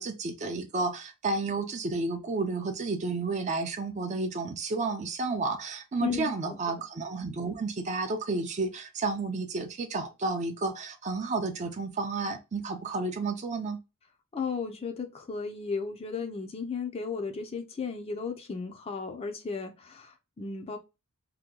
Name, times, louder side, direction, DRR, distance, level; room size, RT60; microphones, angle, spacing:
voice 1, 0.0-13.8, right 3 dB, 35° right, 0.5 m, -31 dB
voice 2, 6.0-6.8 14.3-20.8, left 5 dB, 25° left, 0.4 m, -35 dB
2.8 x 2.2 x 3.6 m
head